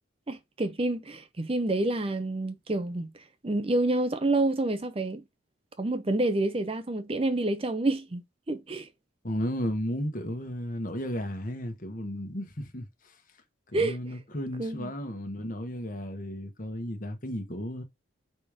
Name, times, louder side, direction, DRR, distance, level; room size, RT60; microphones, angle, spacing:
voice 1, 0.3-3.1 3.4-5.2 5.8-8.9 13.7-14.0 14.6-14.9, right 2 dB, 30° right, 0.6 m, -28 dB
voice 2, 9.2-13.2 13.7-17.8, equal, 45° left, 1.3 m, -34 dB
5.1 x 4.3 x 5.0 m
head